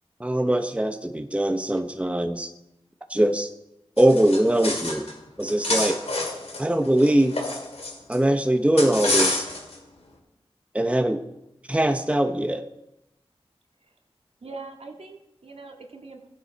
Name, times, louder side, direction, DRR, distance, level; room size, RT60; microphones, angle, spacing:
voice 1, 0.2-2.5 3.1-3.5 4.0-5.1 5.4-5.9 6.6-7.3 8.1-9.5 10.7-11.2 11.7-12.6, right 1 dB, 10° right, 6 dB, 0.9 m, -22 dB
sound 1, 4.0-5.1 5.4-8.2 8.8-9.7, left 2 dB, 80° left, 2.4 m, -28 dB
voice 2, 14.4-16.3, right 3 dB, 70° right, 2 dB, 1.9 m, -42 dB
15.5 x 9.7 x 4.1 m, 0.89 s
cardioid pair, 40°, 11 cm